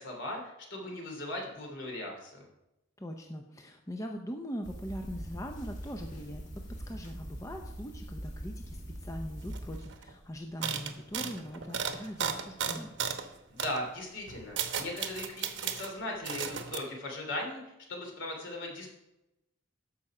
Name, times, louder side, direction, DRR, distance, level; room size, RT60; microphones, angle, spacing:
voice 1, 0.0-2.4 13.5-17.6 17.9-18.9, left 1 dB, 65° left, 1 dB, 2.9 m, -38 dB
voice 2, 3.0-12.9, equal, 15° left, 3 dB, 0.6 m, -41 dB
sound 1, 4.6-9.8, equal, 40° left, 2.0 m, -42 dB
sound 2, 9.5-9.6 9.8-10.1 10.6-13.3 13.6-13.8 14.3-15.9 16.3-16.8, right 7 dB, 65° right, 0.9 m, -35 dB
13.5 x 5.5 x 4.9 m, 0.91 s
head